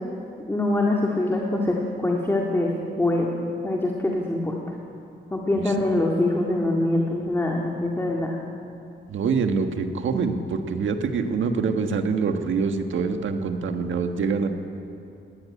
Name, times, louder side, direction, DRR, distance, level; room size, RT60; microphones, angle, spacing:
voice 1, 0.5-2.7 3.0-3.3 3.6-4.5 5.3-8.4, left 2 dB, 10° left, -1 dB, 2.0 m, -24 dB
voice 2, 9.1-14.5, right 5 dB, 75° right, 6 dB, 1.6 m, -25 dB
18.5 x 17.0 x 9.8 m, 2.6 s
wide cardioid pair, 135°, 20 cm